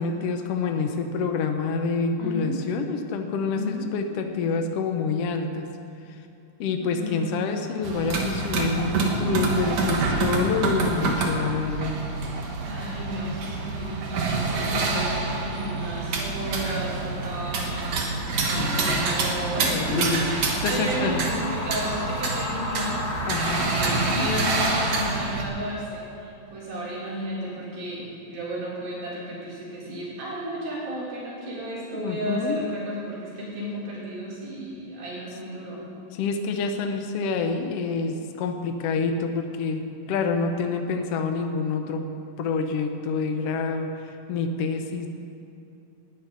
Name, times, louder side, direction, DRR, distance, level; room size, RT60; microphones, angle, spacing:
voice 1, 0.0-5.7 6.6-11.9 18.6-19.2 19.7-20.3 20.6-21.2 23.2-23.7 31.9-32.7 36.1-42.0 42.4-45.1, left 4 dB, 85° left, 5 dB, 1.3 m, -27 dB
voice 2, 2.2-2.7 3.5-3.9 6.8-7.9 12.7-23.0 23.3-35.8, equal, 80° right, -7 dB, 6.1 m, -33 dB
sound 1, 7.8-25.4, right 3 dB, 55° right, 2.1 m, -27 dB
sound 2, 16.9-25.0, left 2 dB, 45° left, 1.3 m, -35 dB
19.5 x 13.0 x 4.0 m, 2.7 s
omnidirectional pair, 4.1 m